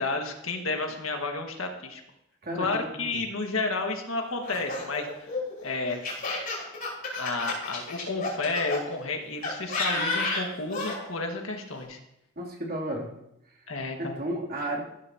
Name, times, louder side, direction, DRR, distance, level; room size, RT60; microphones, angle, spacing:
voice 1, 0.0-2.0 2.5-5.3 5.6-6.0 7.2-12.0 13.7-14.2, left 3 dB, 75° left, 2 dB, 1.8 m, -31 dB
Laughter, 4.4-8.8 9.4-11.0, left 3 dB, 45° left, 5.4 m, -31 dB
voice 2, 12.4-13.1 14.0-14.8, right 1 dB, 45° right, -2 dB, 3.0 m, -32 dB
16.0 x 11.5 x 2.9 m, 0.82 s
head